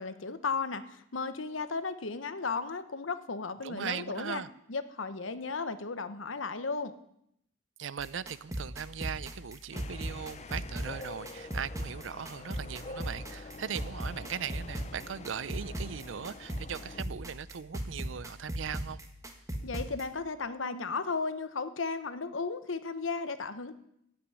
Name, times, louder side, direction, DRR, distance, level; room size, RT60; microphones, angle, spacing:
voice 1, 0.0-4.4 4.7-6.9 19.6-23.7, left 4 dB, 80° left, 12 dB, 1.0 m, -35 dB
voice 2, 3.6-4.5 7.8-19.0, right 7 dB, 70° right, 19 dB, 0.5 m, -39 dB
sound 1, 8.0-20.1, right 1 dB, 15° right, 1.5 m, -39 dB
sound 2, 9.7-17.0, left 3 dB, 35° left, 0.6 m, -47 dB
15.5 x 6.1 x 9.8 m, 0.75 s
head